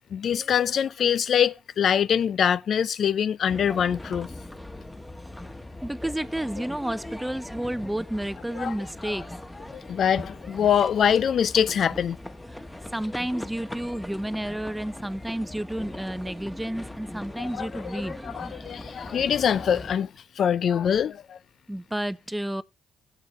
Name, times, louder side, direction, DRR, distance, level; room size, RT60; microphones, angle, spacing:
voice 1, 0.1-4.3 8.6-8.7 9.0-9.2 9.7-12.2 17.4-20.1 20.4-21.4, left 8 dB, 60° left, 0.6 m, -24 dB
sound 1, 3.5-20.0, left 1 dB, 10° left, 1.5 m, -40 dB
voice 2, 5.8-9.3 12.5-12.6 12.9-18.2 21.7-22.6, right 1 dB, 5° right, 0.7 m, -31 dB
17.0 x 8.0 x 3.2 m
cardioid pair, 90°, 0 cm